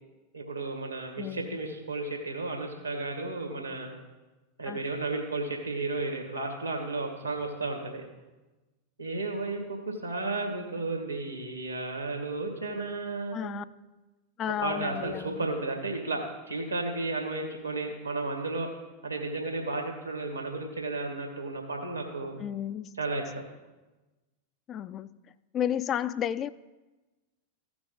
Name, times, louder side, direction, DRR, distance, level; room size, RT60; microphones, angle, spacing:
voice 1, 0.3-4.0 4.6-8.0 9.0-13.6 14.6-18.7 19.0-22.4 23.0-23.4, right 3 dB, 85° right, 2 dB, 2.1 m, -33 dB
voice 2, 1.2-1.6 4.7-4.8 13.3-13.6 14.4-15.4 22.4-23.0 24.7-25.1 25.5-26.5, left 10 dB, 30° left, 17 dB, 0.3 m, -32 dB
15.0 x 6.0 x 4.0 m, 1.1 s
figure-of-eight pair, 90°, 0 cm